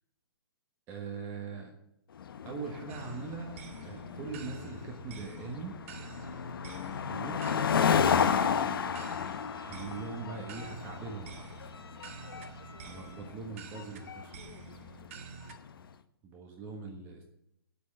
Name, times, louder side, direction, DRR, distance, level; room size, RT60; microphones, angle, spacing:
voice 1, 0.9-1.7 2.4-5.8 7.0-7.6 8.6-9.1 9.6-11.5 12.8-14.4 16.2-17.2, right 4 dB, 15° right, 2 dB, 1.4 m, -41 dB
sound 1, 2.2-15.7, left 7 dB, 65° left, 0.9 m, -33 dB
sound 2, 2.9-15.6, right 6 dB, 35° right, 1.0 m, -49 dB
Bowed string instrument, 8.9-13.5, left 4 dB, 85° left, 4.0 m, -55 dB
9.1 x 8.4 x 8.7 m, 0.80 s
hypercardioid pair, 165°, 13 cm